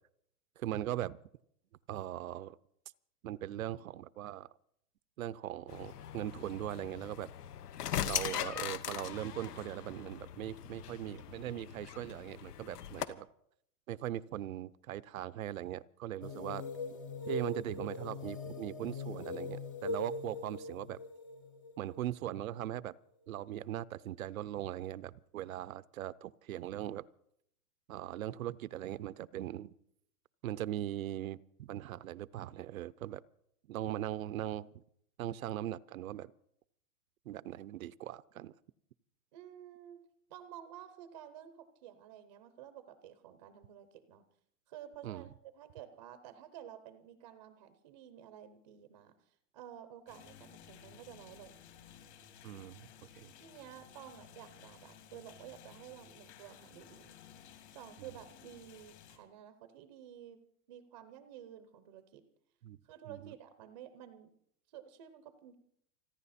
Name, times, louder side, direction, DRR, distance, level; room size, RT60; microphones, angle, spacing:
voice 1, 0.6-1.2 1.9-2.6 3.2-4.5 5.2-7.3 8.1-13.3 13.9-16.6 17.3-21.0 21.8-22.9 23.3-27.0 27.9-29.7 30.4-33.2 33.7-34.8 35.2-36.3 37.3-38.5 45.0-45.3 52.4-52.9 53.2-53.3 58.0-58.1 62.6-62.8 63.1-63.3, right 13 dB, 65° right, 19 dB, 0.6 m, -40 dB
sound 1, 5.7-13.1, left 10 dB, 80° left, 1.2 m, -40 dB
sound 2, 16.2-22.6, left 2 dB, 20° left, 0.6 m, -41 dB
voice 2, 39.3-40.0 40.3-44.2 44.7-51.6 53.4-57.2 57.7-60.4 60.7-62.2 62.8-64.3 64.7-65.5, right 10 dB, 20° right, 10 dB, 0.6 m, -52 dB
sound 3, 50.1-59.2, left 9 dB, 45° left, 2.6 m, -56 dB
29.5 x 10.5 x 4.2 m, 0.71 s
supercardioid pair, 175°, 46 cm